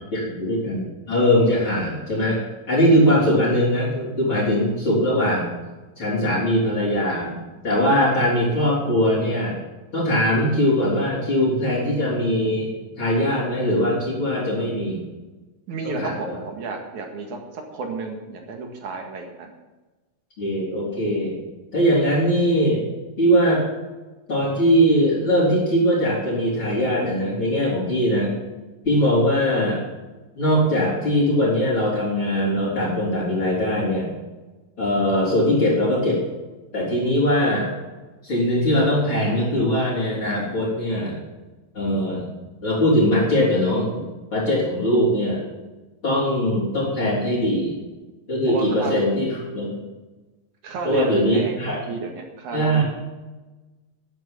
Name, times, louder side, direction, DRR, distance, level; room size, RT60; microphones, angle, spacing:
voice 1, 0.1-5.5 6.0-7.4 7.6-9.6 9.9-12.7 13.0-15.0 15.8-16.4 20.4-21.4 21.7-22.8 23.2-23.6 24.3-28.3 28.8-29.8 30.4-34.1 34.8-36.2 36.7-37.7 38.2-41.2 41.7-42.3 42.6-44.0 44.3-45.4 46.0-47.8 48.3-49.3 49.5-49.8 50.8-51.8 52.5-52.8, equal, 35° left, -9 dB, 5.0 m, -21 dB
voice 2, 15.7-19.5 48.5-49.0 50.6-52.8, right 3 dB, 65° right, 3 dB, 3.1 m, -31 dB
13.0 x 9.1 x 7.6 m, 1.2 s
omnidirectional pair, 3.9 m